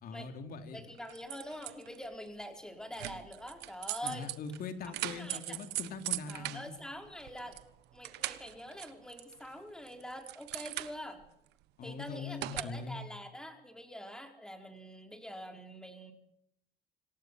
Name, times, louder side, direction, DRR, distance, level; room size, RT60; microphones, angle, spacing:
voice 1, 0.0-0.8 4.0-6.7 11.8-13.0, left 4 dB, 60° left, 7 dB, 3.1 m, -42 dB
voice 2, 0.7-4.3 5.2-5.6 6.3-7.6 7.9-11.2 11.8-16.1, equal, 5° left, 4 dB, 4.4 m, -45 dB
sound 1, 1.0-2.0 2.9-7.7 7.9-9.5 9.8-11.3 12.4-12.6, right 17 dB, 90° right, 1.2 m, -40 dB
26.5 x 16.5 x 7.6 m, 0.77 s
cardioid pair, 110°, 17 cm